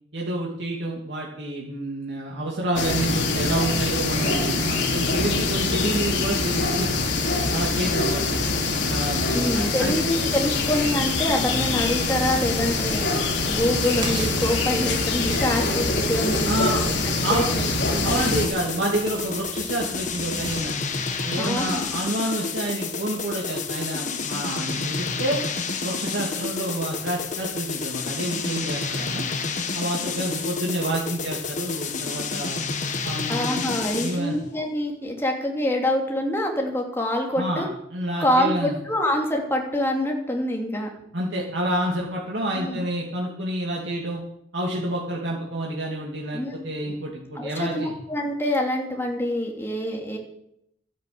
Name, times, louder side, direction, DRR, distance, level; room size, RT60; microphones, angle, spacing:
voice 1, 0.1-6.9 7.5-8.2 8.8-10.0 16.4-16.8 17.2-17.5 18.0-20.7 21.2-25.4 25.8-29.3 29.7-32.6 33.0-33.6 34.0-34.4 37.3-38.8 41.1-44.2 44.5-47.9, right 1 dB, 75° right, -3 dB, 2.7 m, -28 dB
sound 1, 2.8-18.5, left 3 dB, 80° left, 2.8 m, -24 dB
voice 2, 9.3-16.9 17.3-18.3 21.4-21.8 33.3-37.7 38.2-40.9 42.6-42.8 46.3-46.9 47.3-50.2, left 1 dB, 15° left, 0 dB, 3.0 m, -26 dB
sound 2, 13.6-21.9, right 2 dB, 25° right, 3.7 m, -39 dB
sound 3, 18.1-34.3, left 5 dB, 45° left, 1.5 m, -30 dB
13.0 x 10.0 x 8.0 m, 0.76 s
head